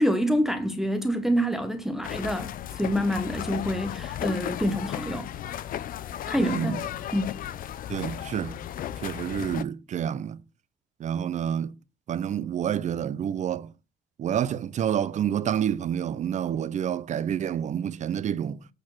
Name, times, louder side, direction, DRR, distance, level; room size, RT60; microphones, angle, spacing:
voice 1, 0.0-5.6 6.3-6.8 7.1-7.4, equal, ahead, 0.9 m, -27 dB
sound 1, 2.0-9.6, left 11 dB, 55° left, 0.6 m, -35 dB
voice 2, 6.3-6.8 7.9-8.6 9.0-10.4 11.0-11.8 12.1-13.7 14.2-18.6, right 9 dB, 45° right, 0.6 m, -28 dB
8.6 x 4.3 x 6.2 m
cardioid pair, 110°, 17 cm